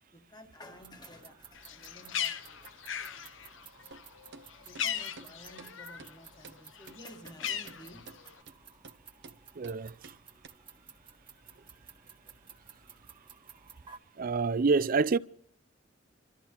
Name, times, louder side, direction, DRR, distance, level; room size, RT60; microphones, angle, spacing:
voice 1, 0.1-2.8 4.6-8.4 8.7-8.8, left 1 dB, 20° left, 1.6 m, -52 dB
sound 1, 0.7-14.0, right 6 dB, 25° right, 1.5 m, -55 dB
Bird, 1.6-6.2 6.5-8.4, left 9 dB, 85° left, 0.7 m, -38 dB
sound 2, 3.9-4.0 4.3-4.5 4.8-4.9 5.2-5.3 5.6-5.7 6.0-6.1 6.4-6.6 6.9-7.0 7.3-7.4 7.7-7.8 8.1-8.2 8.5-8.6 8.8-9.0 9.2-9.4 9.6-9.8 10.0-10.2 10.4-10.5, right 3 dB, 65° right, 0.9 m, -50 dB
voice 2, 9.6-10.1 14.2-15.2, right 4 dB, 50° right, 0.5 m, -27 dB
27.0 x 13.5 x 3.0 m
head